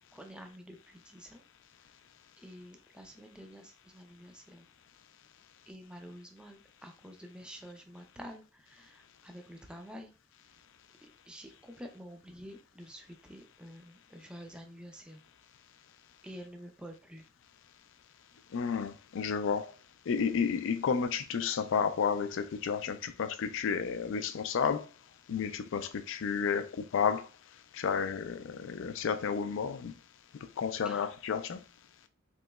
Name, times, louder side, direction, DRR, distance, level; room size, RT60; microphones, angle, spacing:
voice 1, 0.1-1.4 2.4-4.6 5.7-10.1 11.3-15.2 16.2-17.2 30.9-31.1, equal, 5° right, 0.4 m, -49 dB
voice 2, 18.5-19.7 20.1-24.9 25.3-27.3 27.7-29.9 30.6-31.6, left 6 dB, 65° left, 0.4 m, -31 dB
3.7 x 3.0 x 2.2 m
head